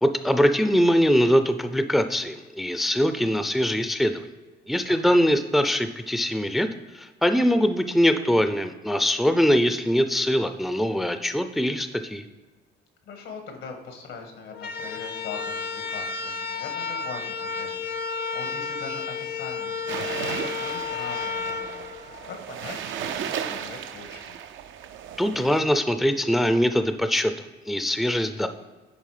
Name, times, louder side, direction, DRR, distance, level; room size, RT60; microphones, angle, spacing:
voice 1, 0.0-4.3 4.7-6.7 6.9-12.2 25.2-27.3 27.7-28.5, equal, ahead, 9 dB, 0.4 m, -22 dB
voice 2, 4.9-5.2 13.0-24.4, left 4 dB, 85° left, 4 dB, 1.6 m, -41 dB
sound 1, 14.5-22.7, left 5 dB, 50° left, 0.6 m, -32 dB
sound 2, 19.9-25.6, right 8 dB, 75° right, 0.5 m, -35 dB
9.3 x 3.5 x 4.9 m, 1.3 s
cardioid pair, 90°, 20 cm